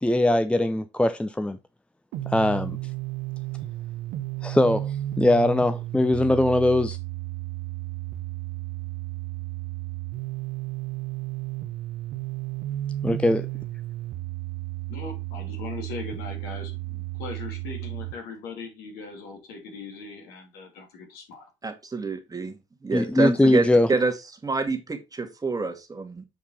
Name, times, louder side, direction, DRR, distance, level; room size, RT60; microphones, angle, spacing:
voice 1, 0.0-1.6 2.3-2.8 4.4-7.0 13.0-13.5 22.9-23.9, left 1 dB, 5° left, 0.6 m, -21 dB
sound 1, 2.1-18.1, right 16 dB, 70° right, 1.1 m, -33 dB
voice 2, 14.9-21.5, left 4 dB, 70° left, 2.8 m, -39 dB
voice 3, 21.6-22.6 22.8-24.1 24.4-26.2, right 3 dB, 20° right, 1.8 m, -27 dB
7.4 x 4.7 x 4.2 m
hypercardioid pair, 60°, 16 cm